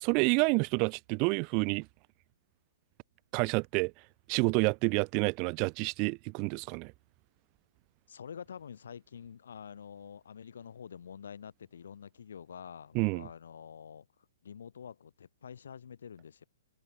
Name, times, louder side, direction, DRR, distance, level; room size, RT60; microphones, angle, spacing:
voice 1, 0.0-1.9 3.3-3.9 4.3-6.9 12.9-13.3, right 33 dB, 30° right, 0.6 m, -28 dB
voice 2, 8.1-14.1 14.4-16.4, left 7 dB, 60° left, 2.4 m, -47 dB
figure-of-eight pair, 115°, 0 cm